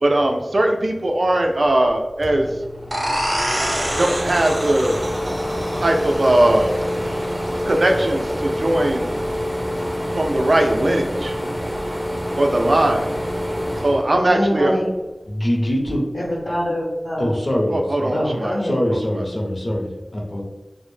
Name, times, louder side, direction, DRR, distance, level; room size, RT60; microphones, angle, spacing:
voice 1, 0.0-2.5 3.6-5.0 5.8-6.7 7.7-9.1 10.1-11.3 12.3-13.1 13.8-14.7 17.7-18.6, right 1 dB, 65° right, 3 dB, 0.4 m, -19 dB
sound 1, 1.9-2.0 2.2-14.8 15.2-16.4, equal, 5° right, 0.5 m, -27 dB
sound 2, 2.9-8.3, equal, 45° right, 0.7 m, -28 dB
voice 2, 14.1-14.9 16.1-17.3 18.1-18.7, equal, 80° left, -7 dB, 0.8 m, -24 dB
voice 3, 15.3-16.0 17.2-18.2 18.6-20.4, equal, 45° left, 0 dB, 0.6 m, -23 dB
2.0 x 2.0 x 3.1 m, 1.1 s
wide cardioid pair, 60°, 0 cm